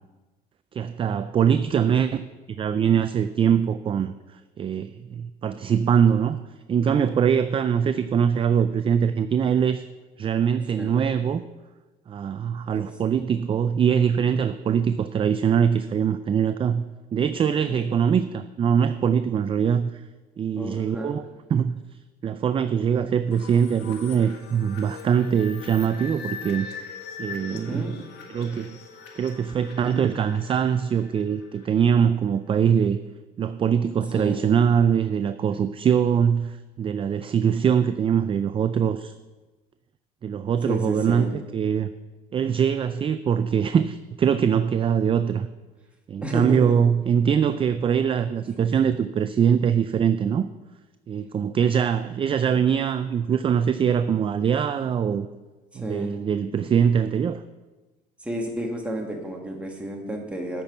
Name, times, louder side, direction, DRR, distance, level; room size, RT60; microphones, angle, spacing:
voice 1, 0.7-2.2 2.6-6.4 6.7-9.9 10.2-11.4 12.1-16.8 17.1-20.0 20.4-21.2 21.5-21.8 22.2-26.7 27.2-27.9 28.3-28.8 29.1-33.0 33.4-39.1 40.2-41.3 41.5-41.9 42.3-45.5 46.1-50.5 51.1-55.3 55.7-57.4, right 7 dB, 30° right, 12 dB, 0.4 m, -22 dB
voice 2, 20.6-21.2 27.5-28.0 34.1-34.4 40.6-41.3 46.2-46.8 48.6-48.7 55.7-56.1 58.2-60.6, right 1 dB, 5° right, 0 dB, 1.9 m, -31 dB
sound 1, 23.3-31.9, left 6 dB, 85° left, 1.5 m, -41 dB
8.6 x 6.0 x 7.1 m, 1.2 s
cardioid pair, 110°, 17 cm